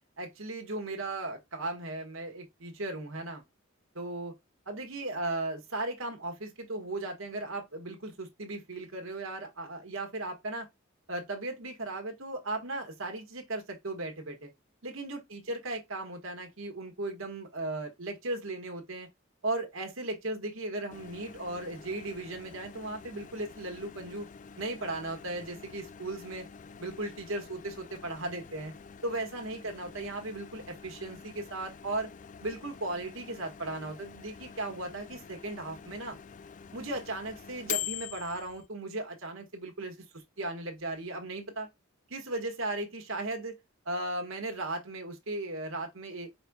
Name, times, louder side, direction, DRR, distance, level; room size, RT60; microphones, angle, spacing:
voice 1, 0.2-3.4 3.9-4.3 4.7-10.7 11.1-14.5 14.8-19.1 19.4-24.3 24.6-26.4 26.8-28.7 29.0-32.1 32.4-36.2 36.7-39.9 40.4-41.7 42.1-43.6 43.8-46.3, right 2 dB, 70° right, 1.4 m, -36 dB
Microwave oven, 20.9-38.7, left 9 dB, 40° left, 0.4 m, -45 dB
4.9 x 4.2 x 2.3 m
head